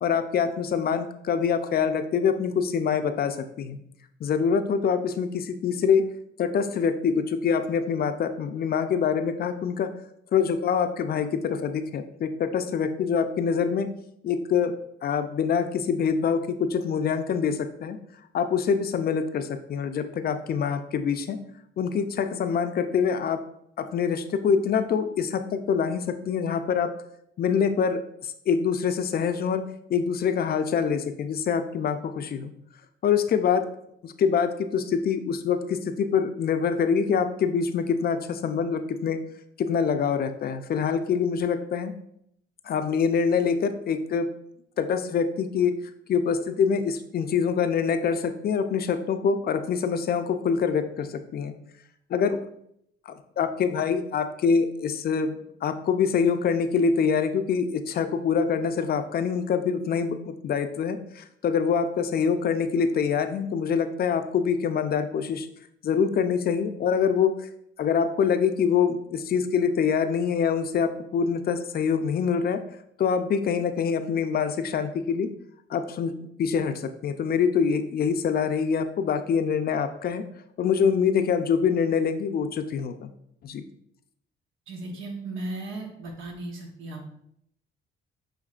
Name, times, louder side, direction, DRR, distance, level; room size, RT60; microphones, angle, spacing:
voice 1, 0.0-3.8 4.2-6.0 6.4-9.9 10.3-13.9 14.2-14.8 15.0-18.0 18.3-21.4 21.8-23.4 23.8-26.9 27.4-29.6 29.9-32.5 33.0-33.7 34.0-39.2 39.6-42.0 42.6-44.3 44.8-45.7 46.1-51.5 52.1-52.4 53.1-65.5 65.8-67.5 67.8-72.6 73.0-75.3 75.7-76.1 76.4-80.2 80.6-83.1 83.4-83.6, left 6 dB, 50° left, 9 dB, 0.4 m, -25 dB
voice 2, 84.7-87.1, right 2 dB, 85° right, 1 dB, 1.0 m, -36 dB
6.4 x 3.1 x 2.4 m, 0.74 s
cardioid pair, 90°, 20 cm